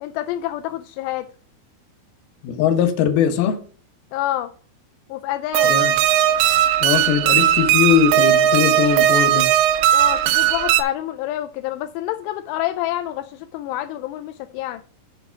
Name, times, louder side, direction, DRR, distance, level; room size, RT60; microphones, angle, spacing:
voice 1, 0.0-1.3 4.1-4.5 5.1-5.7 9.9-14.8, left 14 dB, 85° left, 2.5 m, -27 dB
voice 2, 2.4-3.6 5.6-5.9 6.8-9.5, left 8 dB, 70° left, 2.6 m, -20 dB
sound 1, 5.5-10.8, right 11 dB, 85° right, 3.0 m, -17 dB
6.8 x 6.0 x 5.7 m
omnidirectional pair, 5.4 m